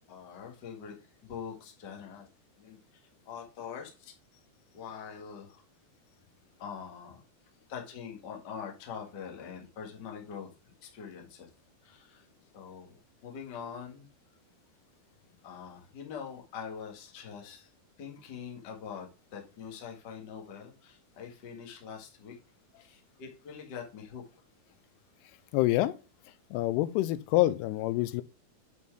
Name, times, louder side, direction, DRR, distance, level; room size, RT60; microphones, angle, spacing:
voice 1, 0.1-2.3 2.5-2.8 3.2-4.1 4.7-5.6 6.6-7.2 7.7-11.5 11.8-12.2 12.5-14.1 15.4-17.7 18.0-22.3 22.8-24.2, left 7 dB, 45° left, 1.4 m, -44 dB
voice 2, 25.5-26.0 26.5-28.2, left 16 dB, 85° left, 2.6 m, -26 dB
8.3 x 4.5 x 4.6 m
omnidirectional pair, 4.7 m